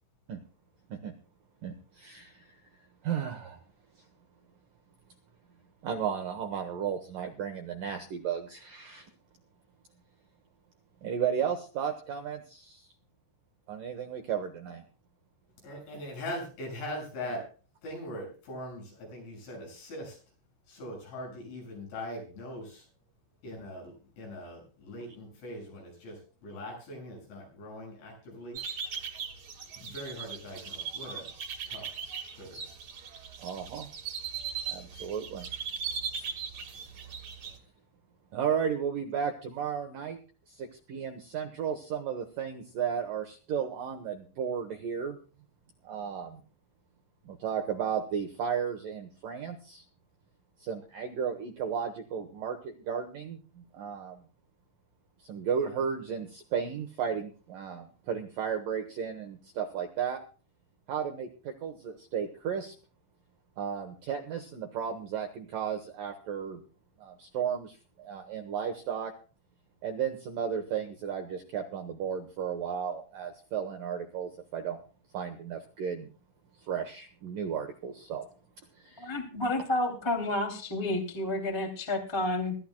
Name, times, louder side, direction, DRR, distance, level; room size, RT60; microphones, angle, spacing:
voice 1, 1.6-2.5 3.0-3.6 5.8-9.1 11.0-12.9 13.7-14.8 33.4-33.9 34.7-35.5 38.3-40.2 40.5-45.2 45.8-46.4 47.2-49.8 50.6-54.2 55.2-60.2 60.9-62.7 63.6-66.6 67.0-69.1 69.8-74.8 75.1-76.1 76.7-78.3 78.8-79.1, right 7 dB, 70° right, 5 dB, 2.1 m, -34 dB
voice 2, 15.6-17.5 17.8-20.2 20.7-22.9 23.4-28.6 29.8-31.3 31.7-32.0 32.3-32.6, left 1 dB, 70° left, 0 dB, 9.4 m, -41 dB
sound 1, 28.5-37.6, right 7 dB, 50° right, 2.2 m, -39 dB
voice 3, 79.0-82.6, left 1 dB, 10° left, 3 dB, 1.7 m, -30 dB
22.5 x 13.0 x 2.3 m, 0.37 s
omnidirectional pair, 5.5 m